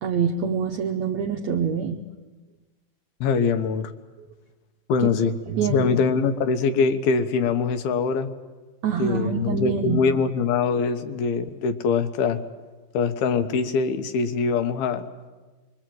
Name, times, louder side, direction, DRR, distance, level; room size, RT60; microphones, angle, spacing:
voice 1, 0.0-2.0 5.0-5.1 5.5-5.9 8.8-10.0, right 6 dB, 80° right, 3 dB, 1.6 m, -25 dB
voice 2, 3.2-3.9 4.9-5.3 5.7-8.3 9.0-12.4 12.9-15.1, left 5 dB, 80° left, 9 dB, 2.9 m, -23 dB
25.5 x 23.0 x 7.8 m, 1.3 s
omnidirectional pair, 4.5 m